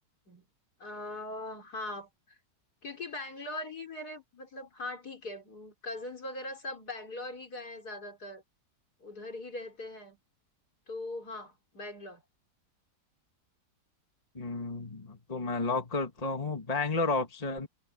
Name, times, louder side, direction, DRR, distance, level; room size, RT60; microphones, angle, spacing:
voice 1, 0.8-2.1 2.8-8.4 9.0-10.2 10.9-12.2, left 2 dB, 70° left, 4.8 m, -41 dB
voice 2, 14.4-17.7, left 3 dB, 25° left, 2.0 m, -32 dB
omnidirectional pair, 1.7 m